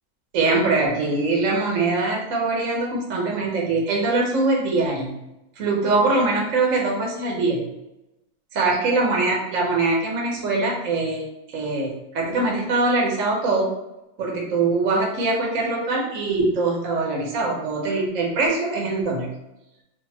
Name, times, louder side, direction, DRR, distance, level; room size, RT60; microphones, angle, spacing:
voice 1, 0.3-5.2 5.6-7.6 8.5-11.2 11.5-13.7 14.2-19.3, right 3 dB, 55° right, -1 dB, 1.0 m, -22 dB
3.5 x 2.5 x 4.2 m, 0.91 s
omnidirectional pair, 2.0 m